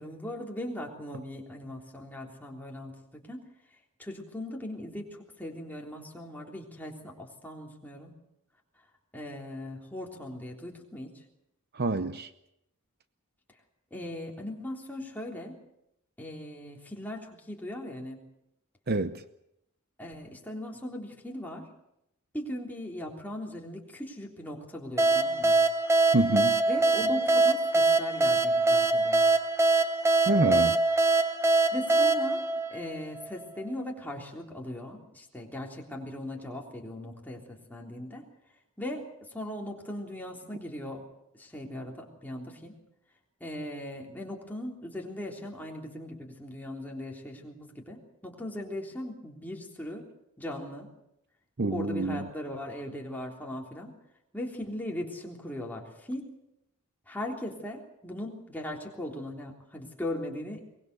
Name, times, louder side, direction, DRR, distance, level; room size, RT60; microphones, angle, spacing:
voice 1, 0.0-3.4 4.0-8.2 9.1-11.2 13.9-15.6 16.2-18.2 20.0-21.7 22.3-25.6 26.7-29.2 31.7-38.3 38.8-41.1 41.3-42.8 43.4-50.1 50.4-50.9 51.7-53.9 54.3-56.4 57.1-60.7, left 1 dB, 10° left, -1 dB, 3.5 m, -39 dB
voice 2, 11.7-12.3 18.9-19.2 26.1-26.6 30.3-30.8 51.6-52.2, right 2 dB, 45° right, 11 dB, 0.8 m, -26 dB
sound 1, 25.0-33.4, right 2 dB, 10° right, 1.0 m, -24 dB
23.0 x 20.5 x 6.9 m, 0.81 s
head